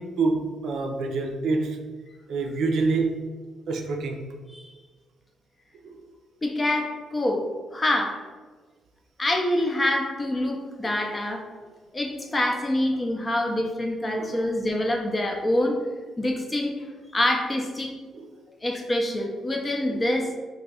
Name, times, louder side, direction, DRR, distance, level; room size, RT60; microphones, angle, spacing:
voice 1, 0.0-1.8 2.3-3.3 3.7-4.3 5.8-6.0 10.8-11.0 14.2-14.4 18.1-18.3 19.9-20.0, right 3 dB, 70° right, 0.4 m, -27 dB
voice 2, 6.4-7.5 7.7-8.2 9.2-11.4 11.9-15.8 16.2-16.8 17.1-17.9 18.6-20.3, left 1 dB, 25° left, 0.5 m, -26 dB
2.6 x 2.3 x 4.0 m
cardioid pair, 90°, 0 cm